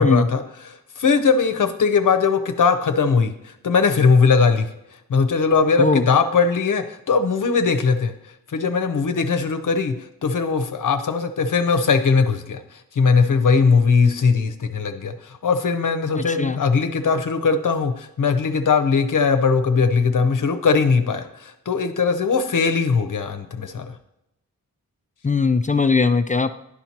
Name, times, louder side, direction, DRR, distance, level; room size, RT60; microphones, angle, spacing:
voice 1, 0.0-4.7 5.1-8.1 8.5-23.9, left 5 dB, 65° left, 7 dB, 0.7 m, -20 dB
voice 2, 16.1-16.6 25.2-26.5, left 4 dB, 25° left, 10 dB, 0.3 m, -19 dB
11.5 x 4.4 x 2.8 m, 0.88 s
wide cardioid pair, 75°, 34 cm